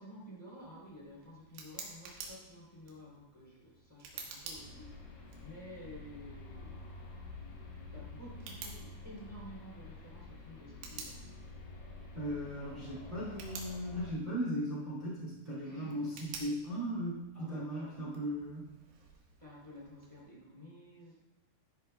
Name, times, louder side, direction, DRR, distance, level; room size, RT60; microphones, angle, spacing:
voice 1, 0.0-6.9 7.9-11.4 15.6-16.0 17.3-18.1 19.4-21.2, equal, 10° left, -6 dB, 2.1 m, -52 dB
Tick, 0.5-20.2, right 5 dB, 75° right, 3.9 m, -52 dB
sound 1, 4.5-14.1, left 3 dB, 55° left, 3.1 m, -49 dB
voice 2, 12.1-18.6, equal, 55° right, -8 dB, 0.5 m, -37 dB
13.5 x 10.5 x 2.3 m, 0.98 s
omnidirectional pair, 5.9 m